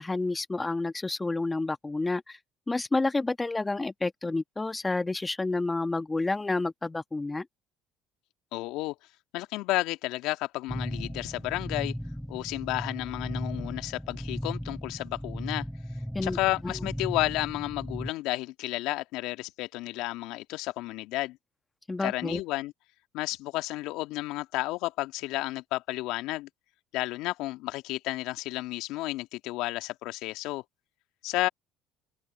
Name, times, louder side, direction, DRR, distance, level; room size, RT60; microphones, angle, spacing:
voice 1, 0.0-2.4 2.7-7.4 16.1-16.4 16.6-16.7 21.9-22.4, left 3 dB, 20° left, 1.5 m, -29 dB
voice 2, 8.5-9.0 9.3-11.9 12.3-15.6 16.2-21.4 22.0-22.7 23.1-26.5 26.9-30.6 31.2-31.5, left 18 dB, 70° left, 2.0 m, -32 dB
sound 1, 10.7-18.1, equal, ahead, 3.8 m, -36 dB
open air
hypercardioid pair, 65°, 0 cm